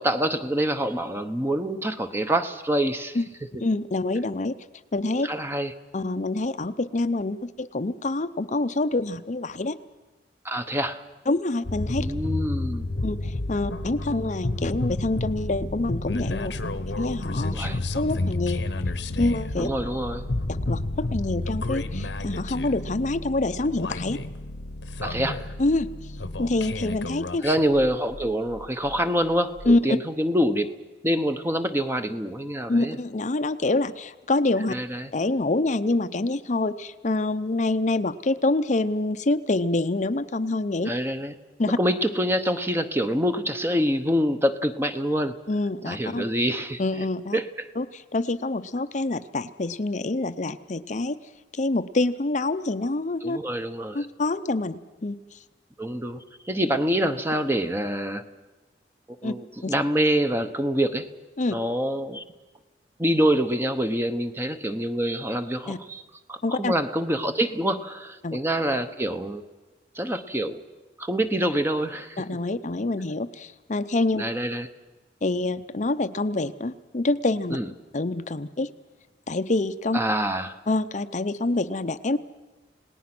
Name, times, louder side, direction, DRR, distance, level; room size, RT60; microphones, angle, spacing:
voice 1, 0.0-3.2 5.2-5.7 10.4-11.0 12.0-12.9 17.5-17.8 19.6-20.3 25.0-25.4 27.4-30.7 31.0-33.0 34.7-35.1 40.8-41.3 41.8-45.4 45.8-47.1 47.3-47.7 53.2-54.1 55.8-58.2 59.2-61.1 61.5-62.2 63.0-66.0 66.3-69.4 69.9-70.6 71.0-72.2 74.1-74.7 77.5-77.7 79.9-80.6, equal, 15° right, 9 dB, 1.0 m, -26 dB
voice 2, 3.6-4.5 4.9-5.3 5.9-9.8 11.3-12.1 13.0-16.5 17.0-17.6 17.9-18.7 19.2-19.7 20.5-24.2 25.6-25.9 26.4-27.5 29.7-29.8 32.7-34.7 35.1-40.9 41.6-41.8 45.5-46.2 46.8-47.4 47.8-51.2 51.5-53.4 53.9-55.2 59.2-59.3 59.6-59.7 61.4-61.6 65.7-65.8 66.4-66.7 68.2-68.4 72.2-74.2 75.2-77.6 77.9-78.7 79.3-80.0 80.7-82.2, left 2 dB, 45° left, 10 dB, 0.7 m, -26 dB
sound 1, 11.6-29.0 29.6-29.8, left 2 dB, 90° left, 1.2 m, -31 dB
28.5 x 18.5 x 6.1 m, 1.2 s
head